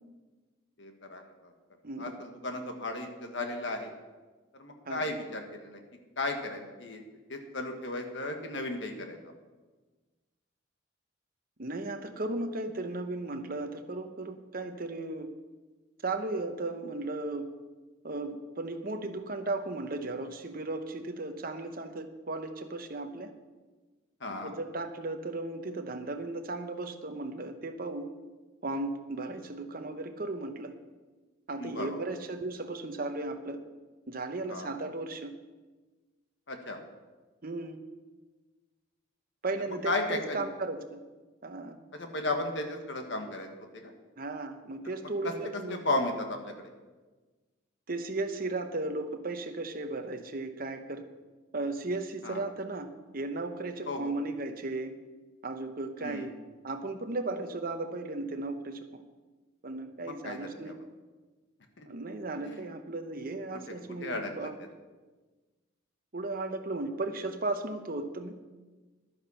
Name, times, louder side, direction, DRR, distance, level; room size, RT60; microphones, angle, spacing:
voice 1, 0.8-1.5 2.0-3.9 4.5-5.8 6.2-7.0 7.3-9.2 24.2-24.5 31.6-32.0 34.5-34.7 36.5-36.8 39.8-40.4 41.9-43.5 43.7-43.9 44.9-45.3 45.7-46.7 52.2-52.4 53.9-54.1 56.0-56.3 60.0-60.4 60.6-60.7 61.8-61.9 62.4-62.6 64.0-64.5, left 2 dB, 60° left, 4 dB, 1.5 m, -35 dB
voice 2, 1.8-2.2 4.9-5.1 11.6-15.3 16.0-17.5 18.0-23.3 24.3-28.1 28.6-30.7 31.5-33.6 34.1-35.3 37.4-37.8 39.4-41.0 41.4-41.8 44.2-45.8 47.9-51.0 51.5-55.0 55.4-56.3 56.6-59.0 59.6-60.8 61.9-64.5 66.1-68.4, right 2 dB, 45° right, 7 dB, 0.9 m, -36 dB
11.5 x 9.6 x 5.6 m, 1.3 s
head